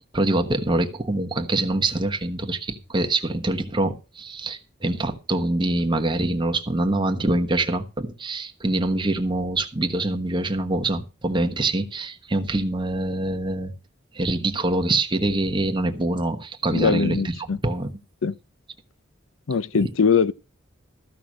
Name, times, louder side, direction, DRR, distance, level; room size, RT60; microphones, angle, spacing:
voice 1, 0.1-13.7 14.1-17.9, right 2 dB, 25° right, 1.2 m, -25 dB
voice 2, 16.7-17.6 18.2-18.3 19.5-20.3, left 5 dB, 75° left, 0.5 m, -21 dB
14.0 x 5.9 x 6.2 m
head